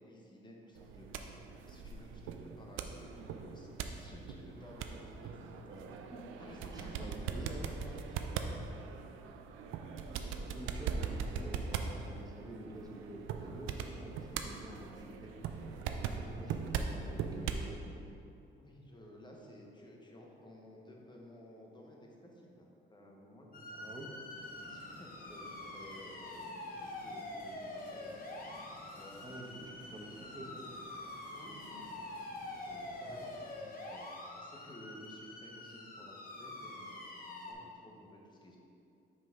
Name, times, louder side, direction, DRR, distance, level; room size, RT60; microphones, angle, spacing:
voice 1, 0.0-1.4 1.7-3.7 4.0-5.5 6.4-7.6 7.8-8.5 18.5-23.9 24.6-28.1 28.9-30.0 31.3-32.0 32.2-38.6, equal, 20° left, -1 dB, 1.0 m, -55 dB
sound 1, 0.7-17.7, right 6 dB, 90° right, 0.4 m, -40 dB
voice 2, 5.6-6.2 6.5-7.7 10.5-15.3 15.9-18.0 23.7-24.1 29.2-30.7, right 1 dB, 20° right, -1 dB, 1.0 m, -48 dB
sound 2, 23.5-37.5, left 2 dB, 45° left, 0.9 m, -46 dB
sound 3, 24.3-33.5, left 1 dB, 70° left, 1.5 m, -57 dB
5.7 x 5.3 x 3.6 m, 2.7 s
cardioid pair, 90°, 20 cm